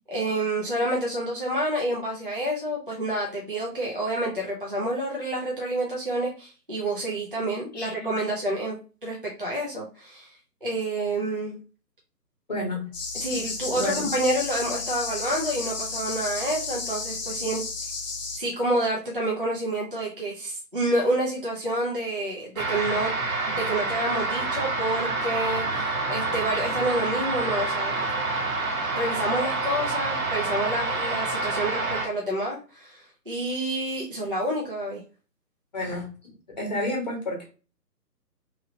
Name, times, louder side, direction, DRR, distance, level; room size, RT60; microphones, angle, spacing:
voice 1, 0.1-11.6 13.1-17.6 18.4-23.1 23.4-28.1 28.9-35.0, right 1 dB, 35° right, -5 dB, 0.4 m, -28 dB
voice 2, 7.7-8.2 12.5-12.9 13.3-13.4 13.7-14.1 35.7-36.3 36.6-37.4, left 1 dB, 25° left, -1 dB, 0.9 m, -31 dB
sound 1, 12.9-18.4, left 4 dB, 50° left, 0.8 m, -32 dB
sound 2, 22.6-32.1, right 3 dB, 55° right, 0.8 m, -28 dB
2.8 x 2.8 x 2.6 m, 0.36 s
figure-of-eight pair, 150°, 50 cm